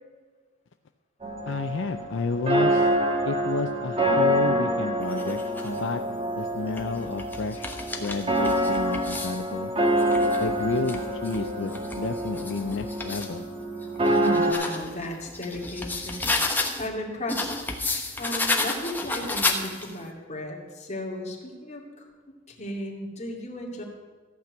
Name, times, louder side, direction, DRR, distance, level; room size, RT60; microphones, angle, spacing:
sound 1, 1.2-14.5, right 1 dB, 30° right, 1.5 m, -26 dB
voice 1, 1.5-2.9 3.2-6.0 6.4-7.7 8.0-9.7 10.4-13.4, left 4 dB, 65° left, 7 dB, 0.5 m, -31 dB
sound 2, 5.0-5.8 6.5-9.4 9.9-13.3 13.8-16.9 17.3-20.0, left 2 dB, 10° left, 1.1 m, -32 dB
voice 2, 14.0-16.3 16.8-17.7 18.2-22.1 22.5-23.8, left 1 dB, 35° left, -1 dB, 2.4 m, -35 dB
14.5 x 6.0 x 8.4 m, 1.4 s
head